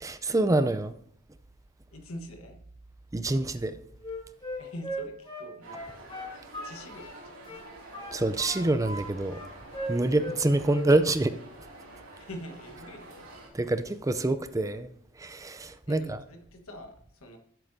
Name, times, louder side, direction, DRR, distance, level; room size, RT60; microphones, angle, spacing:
voice 1, 0.0-0.9 3.1-3.8 8.1-9.4 9.9-11.3 13.5-14.9 15.2-16.2, right 2 dB, 15° right, 0.5 m, -26 dB
voice 2, 1.9-2.6 4.6-5.8 6.6-7.6 10.0-10.2 12.2-13.3 15.9-17.4, equal, 75° left, 1.4 m, -44 dB
Wind instrument woodwind instrument, 4.0-7.2 7.4-9.0 9.3-10.4 10.6-10.9, equal, 25° left, 2.6 m, -38 dB
sound 1, 5.6-13.5, right 2 dB, 70° right, 2.6 m, -48 dB
12.5 x 7.7 x 2.7 m
head